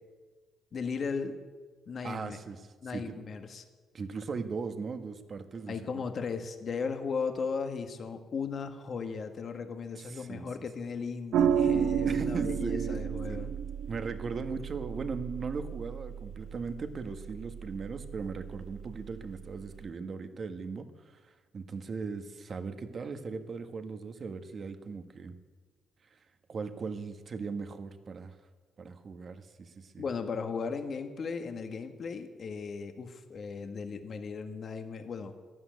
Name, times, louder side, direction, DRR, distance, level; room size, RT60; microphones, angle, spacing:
voice 1, 0.7-1.3 1.9-2.4 2.8-3.6 5.7-13.5 30.0-35.3, left 5 dB, 55° left, 6 dB, 1.6 m, -36 dB
voice 2, 2.0-3.2 3.9-6.0 9.9-10.5 12.0-13.4 13.9-25.4 26.1-26.2 26.5-28.4 28.8-30.0, right 4 dB, 50° right, 8 dB, 1.6 m, -38 dB
sound 1, 11.3-19.9, right 8 dB, 75° right, 0.8 m, -33 dB
13.0 x 11.0 x 9.3 m, 1.4 s
supercardioid pair, 70°, 0 cm